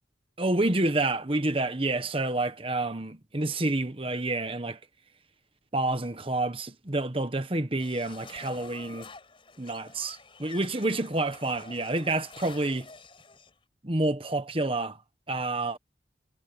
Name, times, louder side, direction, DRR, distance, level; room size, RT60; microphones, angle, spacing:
voice 1, 0.4-4.8 5.7-9.1 9.6-12.9 13.8-15.0 15.3-15.8, right 2 dB, 30° right, 1.3 m, -28 dB
sound 1, 7.8-13.5, left 4 dB, 30° left, 4.9 m, -49 dB
head